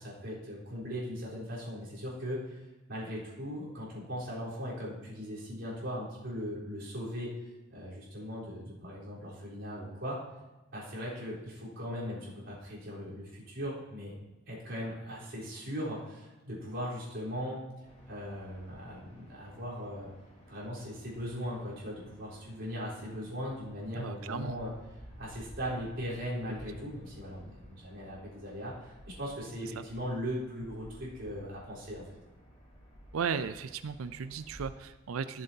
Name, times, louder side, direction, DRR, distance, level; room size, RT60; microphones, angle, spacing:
voice 1, 0.0-2.6 2.9-7.3 7.7-10.2 10.7-14.1 14.5-17.7 18.1-20.1 20.5-24.7 25.2-32.0, equal, 60° right, -7 dB, 4.0 m, -39 dB
sound 1, 17.8-34.8, equal, 30° left, 3.2 m, -54 dB
voice 2, 24.0-24.6 29.8-29.9 33.1-35.4, right 6 dB, 90° right, 13 dB, 0.4 m, -35 dB
16.5 x 7.5 x 2.8 m, 1.1 s
head